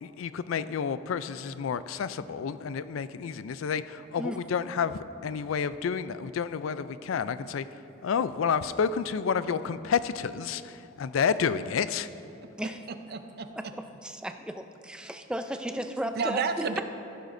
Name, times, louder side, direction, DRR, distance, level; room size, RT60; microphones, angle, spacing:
voice 1, 0.0-7.7 8.0-12.1, left 6 dB, 85° left, 14 dB, 0.4 m, -30 dB
voice 2, 13.1-13.5 15.7-16.8, right 5 dB, 50° right, 8 dB, 0.6 m, -32 dB
voice 3, 14.0-16.4, equal, 5° right, 7 dB, 0.4 m, -34 dB
14.5 x 12.0 x 2.6 m, 2.8 s
head